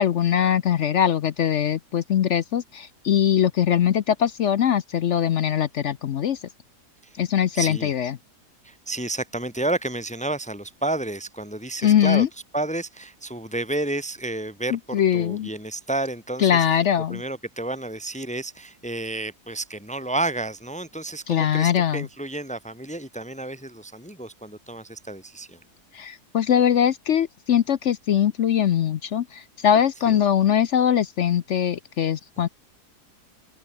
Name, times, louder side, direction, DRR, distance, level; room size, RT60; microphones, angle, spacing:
voice 1, 0.0-6.4 7.2-8.1 11.8-12.3 14.7-15.5 16.4-17.2 21.3-22.1 25.9-32.5, left 9 dB, 60° left, 0.8 m, -21 dB
voice 2, 7.5-7.9 8.6-12.3 12.5-16.8 17.1-25.6 30.1-30.2 32.4-32.5, right 2 dB, 5° left, 2.3 m, -31 dB
open air
omnidirectional pair, 1.7 m